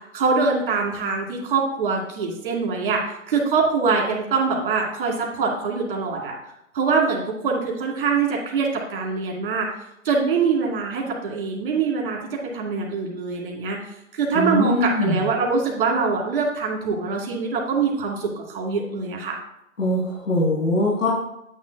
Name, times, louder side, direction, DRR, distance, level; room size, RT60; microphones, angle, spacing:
voice 1, 0.1-3.0 3.3-6.4 6.7-9.7 10.0-13.8 14.1-19.4, right 5 dB, 40° right, -1 dB, 2.4 m, -23 dB
voice 2, 14.3-15.2 19.8-21.1, left 1 dB, 80° left, -6 dB, 2.9 m, -22 dB
9.4 x 8.6 x 2.3 m, 0.81 s
figure-of-eight pair, 145°, 40 cm